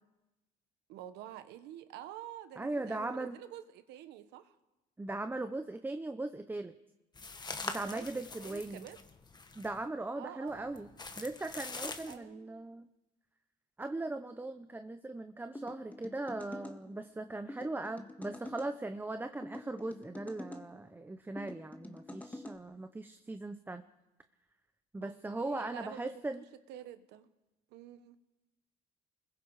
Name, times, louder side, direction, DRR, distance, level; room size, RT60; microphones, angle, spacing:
voice 1, 0.9-4.5 7.8-9.0 10.1-10.9 12.1-12.6 14.0-14.1 25.0-26.1 26.4-27.3 27.7-28.2, right 12 dB, 90° right, 11 dB, 1.4 m, -48 dB
voice 2, 2.6-3.4 5.0-6.7 7.6-8.9 9.6-10.9 11.2-12.9 13.8-23.8 24.9-26.4, right 2 dB, 10° right, 8 dB, 0.8 m, -39 dB
sound 1, 7.2-9.9 10.5-12.1, left 4 dB, 25° left, 1.7 m, -44 dB
sound 2, 15.5-16.8 17.5-18.7 19.4-20.7 21.4-22.6, left 1 dB, 10° left, 1.8 m, -46 dB
28.5 x 21.5 x 5.0 m, 1.0 s
cardioid pair, 110°, 17 cm